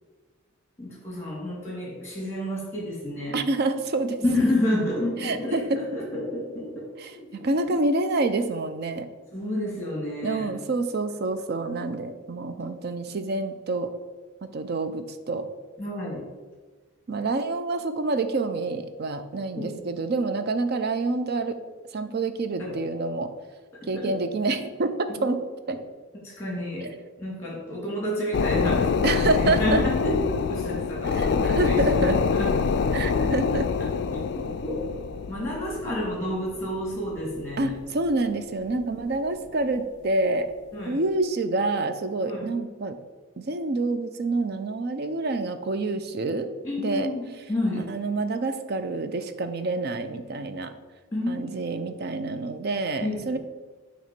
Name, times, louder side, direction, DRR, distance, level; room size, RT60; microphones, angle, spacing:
voice 1, 0.8-3.3 4.2-7.3 7.6-7.7 9.3-10.5 15.8-16.3 19.6-19.8 22.6-22.7 23.9-24.1 25.2-25.3 26.2-26.9 27.2-33.6 34.1-34.9 35.3-37.7 40.7-41.0 42.2-42.4 46.6-47.9 51.1-51.5 53.0-53.4, left 1 dB, 10° left, -4 dB, 2.2 m, -30 dB
voice 2, 3.3-4.2 5.2-5.9 7.0-9.1 10.2-13.9 14.4-15.5 17.1-21.6 21.9-23.3 23.9-25.4 25.7-25.8 29.0-29.8 31.1-32.2 32.9-33.7 37.6-40.5 40.9-43.0 43.4-46.5 46.8-47.1 47.8-50.7 51.3-53.4, right 2 dB, 50° right, 10 dB, 0.5 m, -27 dB
sound 1, 28.3-38.3 38.7-38.8, left 5 dB, 55° left, 0.3 m, -26 dB
7.2 x 3.0 x 5.9 m, 1.3 s
head